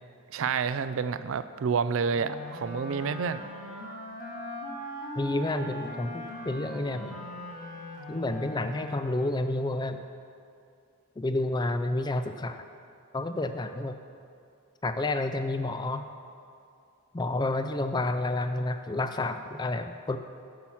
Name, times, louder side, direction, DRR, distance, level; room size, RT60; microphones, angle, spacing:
voice 1, 0.3-3.5, right 6 dB, 60° right, 13 dB, 0.4 m, -29 dB
Wind instrument woodwind instrument, 2.1-9.5, left 1 dB, 35° left, 1.7 m, -40 dB
voice 2, 5.2-7.2 8.1-10.0 11.2-12.6 13.1-14.0 14.8-16.0 17.1-20.2, left 2 dB, 20° left, 8 dB, 0.3 m, -30 dB
10.5 x 5.8 x 7.2 m, 2.4 s
head